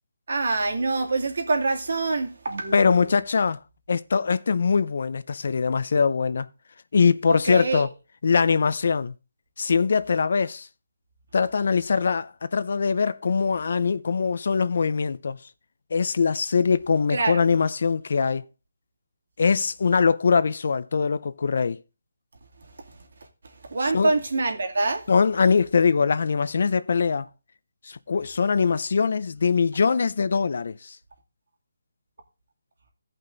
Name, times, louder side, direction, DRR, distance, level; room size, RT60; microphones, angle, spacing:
voice 1, 0.3-3.2 7.3-7.9 17.1-17.4 23.7-25.0, right 3 dB, 60° right, 2.6 m, -25 dB
voice 2, 2.7-3.6 3.9-6.5 6.9-7.9 8.2-9.1 9.6-10.7 11.3-15.4 15.9-18.4 19.4-21.8 23.9-24.1 25.1-27.3 27.9-31.0, left 5 dB, 50° left, 0.5 m, -22 dB
16.5 x 5.6 x 3.9 m
hypercardioid pair, 175°, 0 cm